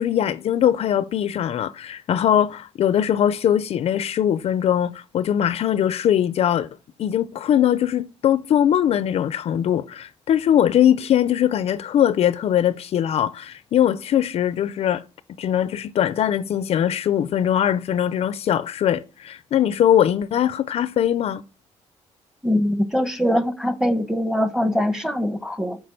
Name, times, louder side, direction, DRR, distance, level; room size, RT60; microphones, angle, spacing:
voice 1, 0.0-6.7 7.0-15.0 15.4-21.4, left 10 dB, 60° left, 0.5 m, -21 dB
voice 2, 22.4-25.8, equal, 5° right, 1.0 m, -22 dB
7.8 x 4.6 x 6.8 m
cardioid pair, 115°, 12 cm